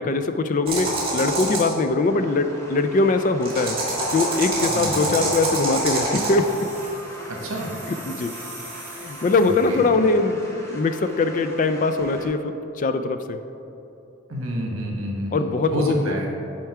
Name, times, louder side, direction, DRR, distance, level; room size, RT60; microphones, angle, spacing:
voice 1, 0.0-3.8 4.1-6.6 8.1-8.3 9.0-13.4 15.3-16.2, left 3 dB, 35° left, 9 dB, 0.3 m, -22 dB
sound 1, 0.7-1.7 3.4-6.3, right 2 dB, 25° right, 1.5 m, -25 dB
sound 2, 1.9-12.3, equal, 15° left, 0.8 m, -40 dB
voice 2, 4.7-5.1 7.4-7.7 9.4-9.8 14.3-16.3, equal, 80° right, 0 dB, 1.3 m, -28 dB
sound 3, 6.2-9.9, right 2 dB, 10° right, 1.0 m, -43 dB
8.0 x 4.4 x 4.7 m, 2.9 s
head